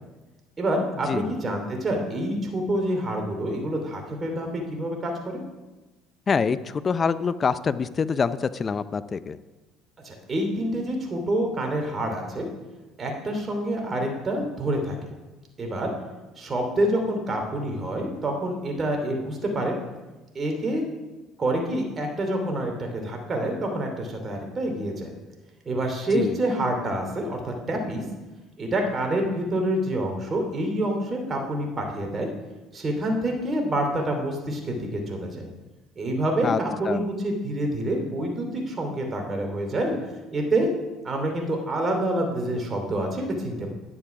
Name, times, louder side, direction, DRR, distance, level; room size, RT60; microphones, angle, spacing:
voice 1, 0.6-5.4 10.0-12.5 13.0-15.0 15.6-15.9 16.4-19.7 20.3-20.8 21.4-25.1 25.6-28.0 28.6-32.3 32.7-35.5 36.0-40.0 40.3-40.7 41.0-43.7, right 1 dB, 35° right, 3 dB, 2.8 m, -27 dB
voice 2, 6.3-9.4 26.1-26.4 36.4-36.6 36.9-37.0, left 5 dB, 35° left, 15 dB, 0.5 m, -25 dB
11.0 x 6.9 x 6.0 m, 1.1 s
supercardioid pair, 85°, 0 cm